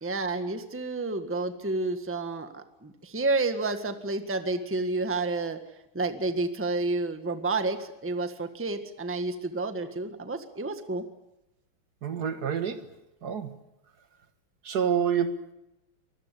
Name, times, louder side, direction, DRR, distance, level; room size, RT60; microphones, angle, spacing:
voice 1, 0.0-5.6 5.9-11.0, right 3 dB, 5° right, 1.4 m, -30 dB
voice 2, 12.0-12.9 13.2-13.5 14.6-15.4, right 7 dB, 50° right, 2.0 m, -27 dB
25.0 x 20.0 x 8.4 m
omnidirectional pair, 2.4 m